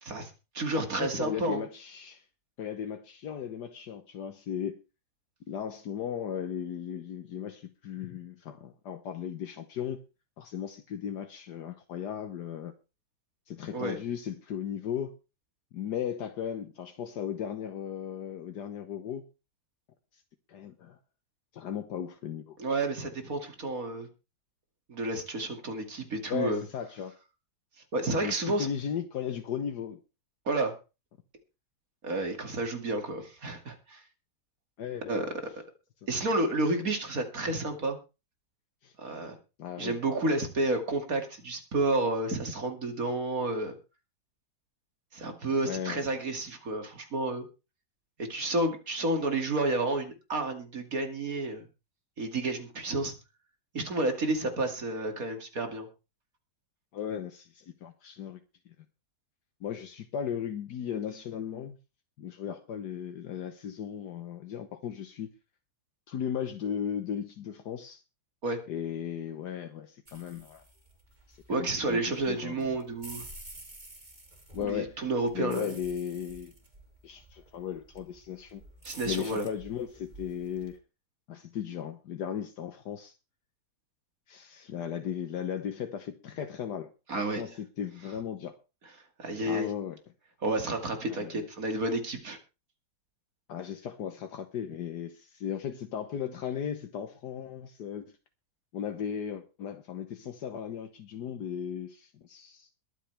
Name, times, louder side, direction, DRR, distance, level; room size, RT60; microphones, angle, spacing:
voice 1, 0.1-1.6 13.7-14.0 22.6-24.1 24.9-26.6 27.9-28.7 30.5-30.8 32.0-34.0 35.1-35.3 36.1-38.0 39.0-39.3 39.8-43.8 45.1-47.4 48.2-51.7 52.2-53.1 53.7-55.9 68.4-68.6 71.5-73.3 74.6-75.7 78.8-79.5 87.1-87.4 89.2-89.7 90.4-92.4, right 2 dB, 55° right, 2.8 m, -30 dB
voice 2, 0.7-2.2 2.6-4.8 5.5-10.0 10.4-12.7 13.5-15.1 15.7-19.2 20.1-20.2 20.5-21.0 21.5-22.6 26.3-27.1 28.2-30.0 34.8-35.3 38.8-38.9 39.6-40.0 45.6-46.0 56.9-58.4 59.6-61.8 62.2-65.3 66.1-68.0 68.7-70.6 71.3-72.8 74.5-75.0 75.3-76.5 77.0-78.6 79.0-80.8 81.3-83.2 84.3-88.6 89.5-90.0 91.1-91.4 93.5-98.2 98.7-102.7, left 8 dB, 75° left, 1.6 m, -36 dB
sound 1, 70.1-80.8, right 2 dB, 25° right, 2.7 m, -50 dB
22.0 x 9.1 x 3.4 m
omnidirectional pair, 1.8 m